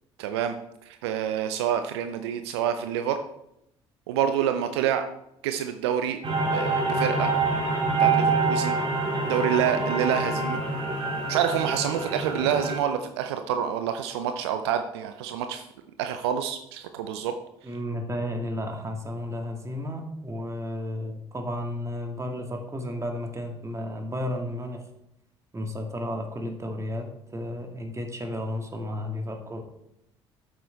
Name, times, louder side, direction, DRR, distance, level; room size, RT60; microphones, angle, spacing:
voice 1, 0.2-0.6 0.9-3.2 4.1-5.1 5.4-6.2 6.5-7.3 8.0-8.8 9.2-10.6 11.3-15.7 16.0-17.3, right 9 dB, 75° right, 8 dB, 0.5 m, -27 dB
sound 1, 6.2-12.8, right 3 dB, 40° right, 2.8 m, -26 dB
voice 2, 17.6-24.8 25.5-27.1 27.3-29.6, left 1 dB, 20° right, 3 dB, 2.0 m, -33 dB
8.8 x 7.5 x 3.5 m, 0.80 s
figure-of-eight pair, 50°, 14 cm